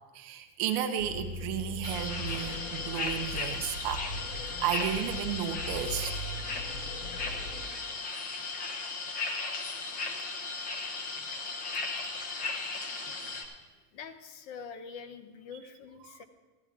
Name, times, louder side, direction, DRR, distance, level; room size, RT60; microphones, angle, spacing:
voice 1, 0.1-6.1, right 9 dB, 40° right, 7 dB, 0.7 m, -33 dB
sound 1, 1.0-7.6, left 1 dB, 80° left, 3.2 m, -40 dB
sound 2, 1.8-13.5, left 3 dB, 20° left, 0.7 m, -36 dB
voice 2, 13.9-16.2, left 6 dB, 50° left, 9 dB, 0.9 m, -45 dB
14.5 x 10.5 x 3.7 m, 1.2 s
supercardioid pair, 175°, 46 cm